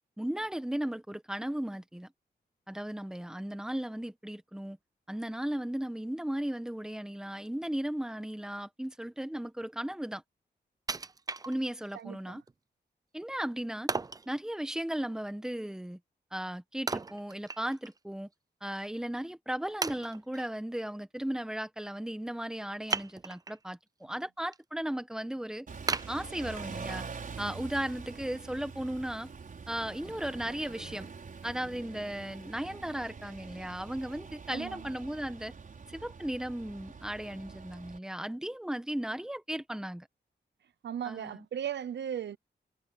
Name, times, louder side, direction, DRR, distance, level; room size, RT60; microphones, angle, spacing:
voice 1, 0.2-2.1 2.7-4.8 5.1-10.2 11.5-12.4 13.1-13.9 14.3-16.0 16.3-18.3 18.6-25.7 26.1-27.0 27.4-29.3 29.7-31.1 31.4-35.5 35.9-40.1 41.1-41.4, right 1 dB, 5° right, 1.3 m, -36 dB
Wood, 10.9-12.0 12.5-12.6 13.9-14.3 16.9-18.0 18.3-18.4 19.1-19.2 19.8-20.5 22.9-23.6 24.1-24.6 25.0-25.1 25.9-26.9 27.4-27.5, right 4 dB, 20° right, 0.5 m, -35 dB
voice 2, 11.9-12.4 34.5-34.9 40.8-42.4, right 9 dB, 80° right, 0.7 m, -37 dB
Car / Idling / Accelerating revving vroom, 25.7-38.0, right 5 dB, 50° right, 5.6 m, -45 dB
wide cardioid pair, 165°, 18 cm